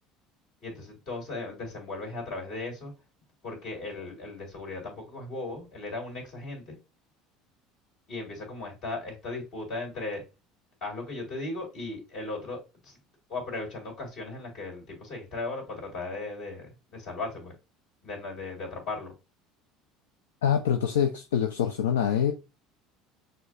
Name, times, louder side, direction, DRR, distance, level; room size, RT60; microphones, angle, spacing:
voice 1, 0.6-2.9 3.4-6.8 8.1-10.2 10.8-12.9 13.3-17.5 18.0-19.1, left 2 dB, 60° left, 2.4 m, -37 dB
voice 2, 20.4-22.3, left 8 dB, 90° left, 0.3 m, -25 dB
6.2 x 2.3 x 2.4 m
hypercardioid pair, 85°, 0 cm